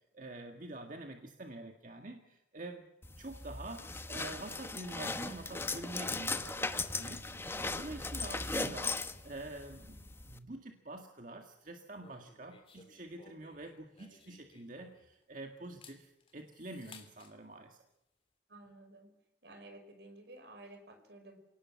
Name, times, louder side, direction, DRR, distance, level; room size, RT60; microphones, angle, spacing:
voice 1, 0.1-6.7 7.0-7.3 7.8-17.8, right 2 dB, 45° right, 4 dB, 1.8 m, -47 dB
sound 1, 3.0-10.4, left 3 dB, 15° left, 1.0 m, -38 dB
voice 2, 7.3-7.8 18.5-19.1 19.4-21.4, right 2 dB, 70° right, 7 dB, 5.2 m, -53 dB
sound 2, 12.0-15.2 15.6-17.3, left 4 dB, 30° left, 3.2 m, -59 dB
28.0 x 18.5 x 7.4 m, 0.89 s
head